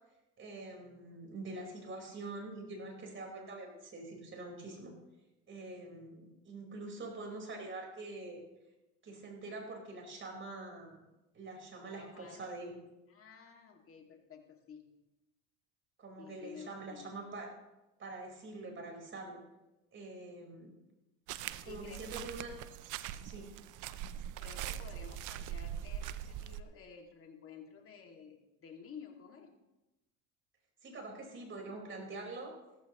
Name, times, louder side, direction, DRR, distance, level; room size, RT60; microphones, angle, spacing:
voice 1, 0.4-4.9 5.5-8.4 9.0-11.0 11.3-12.7 16.0-17.5 18.0-19.4 19.9-20.7 21.6-22.5 23.2-23.6 30.8-32.5, right 2 dB, 30° right, 1 dB, 4.9 m, -45 dB
voice 2, 12.0-12.5 13.1-14.9 16.2-17.1 21.6-22.2 24.4-29.5, left 6 dB, 35° left, 2 dB, 2.6 m, -53 dB
sound 1, 21.3-26.6, right 11 dB, 55° right, 0.8 m, -42 dB
16.0 x 14.5 x 3.2 m, 0.99 s
supercardioid pair, 100°, 37 cm